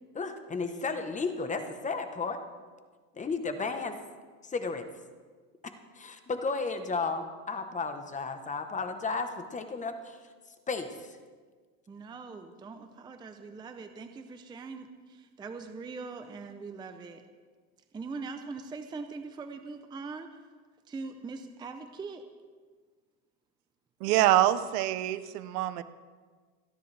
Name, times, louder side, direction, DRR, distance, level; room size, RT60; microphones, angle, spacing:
voice 1, 0.1-2.4 3.1-4.0 4.4-4.8 5.9-10.2 10.7-11.2, left 4 dB, 15° left, 7 dB, 1.0 m, -33 dB
voice 2, 11.9-17.2 17.9-20.4 20.9-22.2, right 4 dB, 10° right, 7 dB, 0.5 m, -42 dB
voice 3, 24.0-25.8, right 14 dB, 80° right, 13 dB, 0.9 m, -25 dB
27.5 x 10.5 x 3.3 m, 1.5 s
supercardioid pair, 135°, 46 cm